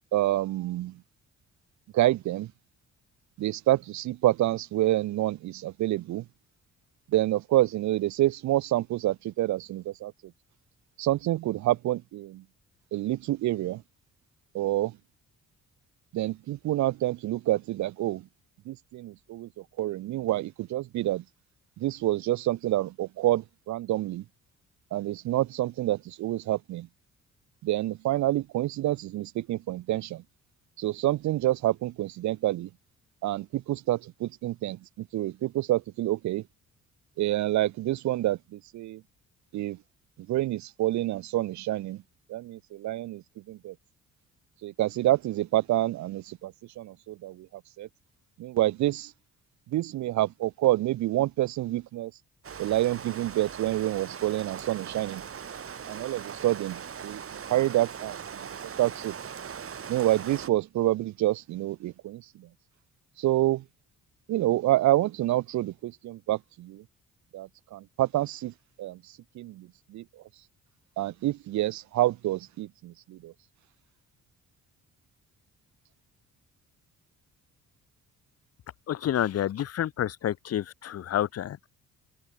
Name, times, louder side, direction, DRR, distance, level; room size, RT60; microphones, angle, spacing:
voice 1, 0.1-1.0 1.9-2.5 3.4-6.2 7.1-10.1 11.0-12.4 12.9-13.8 14.5-15.0 16.1-18.3 18.7-21.2 21.8-24.2 24.9-26.9 27.6-30.2 30.8-32.7 33.2-36.4 37.2-39.0 39.5-39.8 40.3-42.0 42.3-43.7 44.6-47.9 48.4-49.1 49.7-52.1 52.6-55.2 55.9-57.2 57.5-58.5 58.8-59.1 59.9-62.5 63.2-63.6 64.3-66.8 67.3-68.5 68.8-69.0 69.3-70.2 71.0-73.3, right 15 dB, 70° right, 0.6 m, -28 dB
Rain, 52.4-60.5, right 7 dB, 50° right, 4.2 m, -40 dB
voice 2, 78.9-81.7, left 11 dB, 55° left, 0.9 m, -29 dB
open air
cardioid pair, 90°, 30 cm